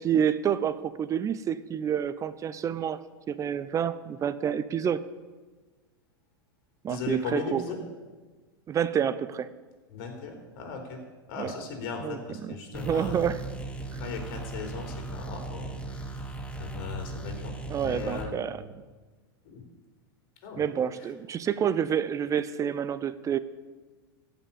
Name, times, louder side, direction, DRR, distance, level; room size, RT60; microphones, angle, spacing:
voice 1, 0.0-3.0 3.3-5.0 6.8-7.6 8.7-9.5 11.4-11.5 12.0-13.4 13.9-14.0 17.7-18.6 20.6-23.4, right 8 dB, 25° right, 14 dB, 0.6 m, -28 dB
voice 2, 6.9-7.8 9.9-11.0 11.3-13.3 14.0-17.5 17.8-18.5 19.4-19.6 20.4-20.7 21.0-21.1, left 4 dB, 55° left, 3 dB, 3.5 m, -37 dB
sound 1, 12.7-18.3, right 2 dB, 10° left, 1.5 m, -37 dB
15.0 x 6.0 x 8.5 m, 1.3 s
hypercardioid pair, 95°, 12 cm